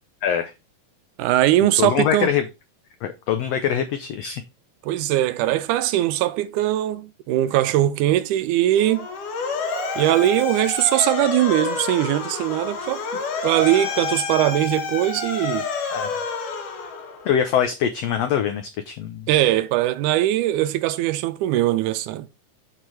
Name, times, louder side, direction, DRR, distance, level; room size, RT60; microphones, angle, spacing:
voice 1, 0.2-0.5 1.8-2.4 3.0-4.4 15.9-16.1 17.2-19.3, left 9 dB, 90° left, 1.4 m, -23 dB
voice 2, 1.2-2.3 4.8-9.1 10.0-13.0 13.4-15.7 19.3-22.3, right 14 dB, 80° right, 1.9 m, -21 dB
Motor vehicle (road) / Siren, 8.8-17.4, left 4 dB, 70° left, 3.0 m, -29 dB
7.7 x 4.5 x 4.7 m
omnidirectional pair, 3.8 m